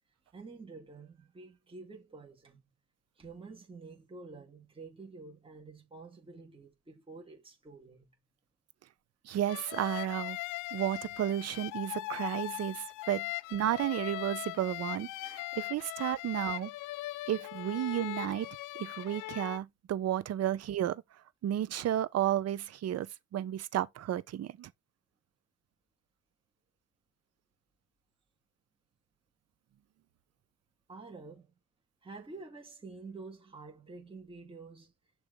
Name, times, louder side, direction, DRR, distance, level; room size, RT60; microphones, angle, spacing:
voice 1, 0.3-2.6 3.2-8.1 30.9-31.5 32.0-34.9, right 3 dB, 15° right, 2.3 m, -49 dB
voice 2, 9.2-10.4 10.7-16.7 17.3-18.5 18.8-21.0 21.4-24.7, right 11 dB, 55° right, 0.8 m, -32 dB
sound 1, 9.5-19.6, left 19 dB, 90° left, 0.5 m, -40 dB
6.8 x 3.2 x 5.3 m
cardioid pair, 115°, 30 cm